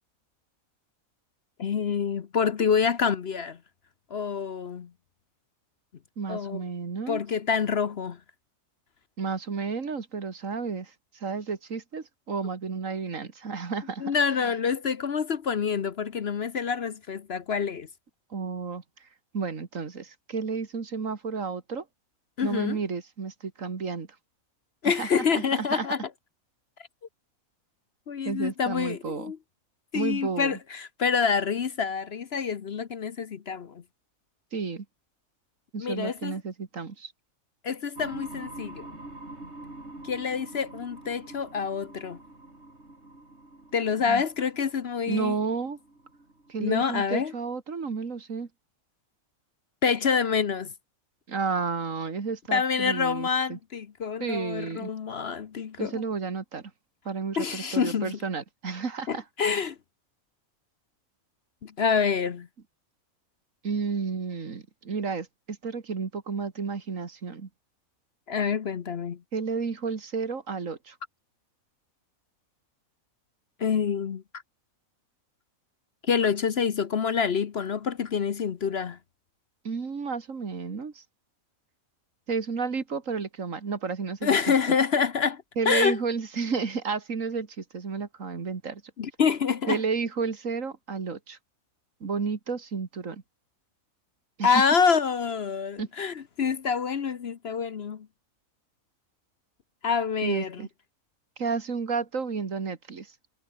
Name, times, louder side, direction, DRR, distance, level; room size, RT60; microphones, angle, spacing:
voice 1, 1.6-3.6 4.1-4.9 6.3-6.6 7.1-8.2 14.0-17.9 22.4-22.8 24.8-26.0 28.1-29.4 29.9-33.8 35.8-36.3 37.6-39.0 40.0-42.2 43.7-45.3 46.6-47.3 49.8-50.7 52.5-55.9 57.4-58.2 59.1-59.8 61.6-62.5 68.3-69.2 73.6-74.2 76.1-79.0 84.2-86.0 89.0-89.8 94.4-98.1 99.8-100.7, left 6 dB, 50° left, 1.0 m, -27 dB
voice 2, 6.2-7.2 9.2-14.1 18.3-18.8 19.3-21.8 22.4-24.1 24.8-25.1 25.4-25.9 28.3-29.3 29.9-30.6 34.5-34.9 35.7-37.1 44.1-44.2 45.1-45.8 46.5-48.5 51.3-53.6 54.2-54.9 55.8-56.7 57.1-59.2 63.6-67.5 69.3-71.0 79.6-81.0 82.3-84.7 85.6-88.8 89.7-91.4 92.0-93.2 94.4-94.6 95.8-95.9 100.2-100.7 101.4-103.1, right 5 dB, 65° right, 2.4 m, -32 dB
sound 1, 38.0-47.5, right 2 dB, 50° right, 5.8 m, -45 dB
omnidirectional pair, 1.5 m